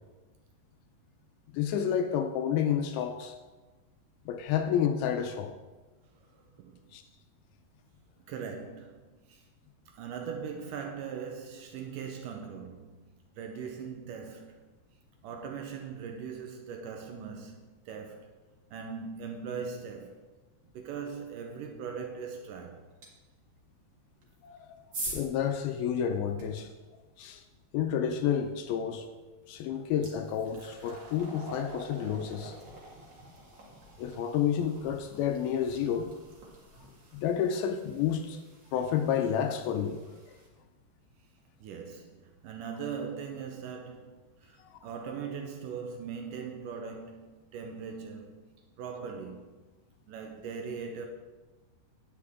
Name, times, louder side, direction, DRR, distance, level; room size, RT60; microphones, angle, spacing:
voice 1, 1.5-3.4 4.3-5.5 6.9-7.0 24.4-24.8 25.1-26.7 27.2-27.4 27.7-29.1 29.5-32.6 34.0-36.1 37.2-38.4 38.7-40.0 44.6-44.7, left 8 dB, 80° left, 2.3 m, -30 dB
voice 2, 6.3-6.8 8.3-9.4 9.9-14.7 15.2-18.4 18.7-20.3 20.7-22.9 41.6-49.7 50.1-51.1, right 6 dB, 80° right, 1.9 m, -40 dB
sound 1, 23.0-23.1 24.2-26.6 28.9-29.1 29.5-40.5, right 2 dB, 40° right, 1.8 m, -46 dB
9.9 x 9.2 x 3.6 m
omnidirectional pair, 4.6 m